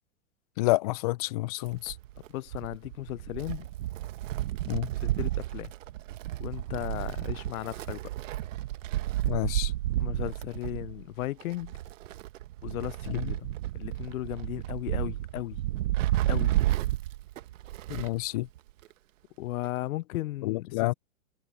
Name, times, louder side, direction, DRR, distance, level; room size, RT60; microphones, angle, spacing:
voice 1, 0.6-2.0 4.7-4.9 9.2-9.7 13.1-13.3 17.9-18.5 20.4-20.9, left 20 dB, 30° left, 0.4 m, -29 dB
Wind, 1.7-18.3 18.6-18.7 19.6-19.7, right 14 dB, 65° right, 1.3 m, -32 dB
voice 2, 2.3-3.7 5.0-5.7 6.4-8.0 10.0-11.8 12.6-15.6 16.3-16.5 19.4-20.9, left 16 dB, 85° left, 0.5 m, -36 dB
hypercardioid pair, 135°, 41 cm